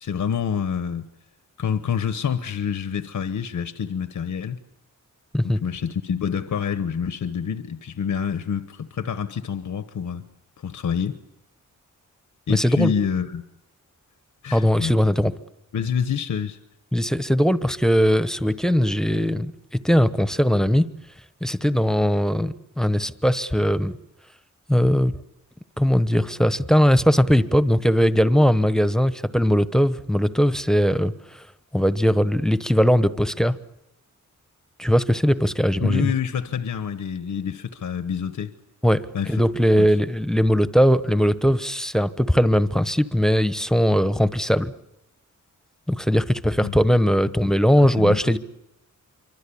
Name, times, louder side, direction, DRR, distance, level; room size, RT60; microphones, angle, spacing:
voice 1, 0.0-1.1 1.6-4.6 5.4-10.2 10.6-11.2 12.5-13.4 14.4-15.0 15.7-16.6 35.8-38.5 39.1-39.4 39.8-39.9 46.6-46.8 47.8-48.4, left 7 dB, 70° left, 1.1 m, -27 dB
voice 2, 12.5-12.9 14.5-15.3 16.9-20.9 21.4-24.0 24.7-25.1 25.8-31.4 31.7-33.6 34.8-36.1 38.8-44.7 45.9-48.4, equal, ahead, 1.0 m, -20 dB
26.0 x 24.5 x 8.6 m
wide cardioid pair, 95°, 31 cm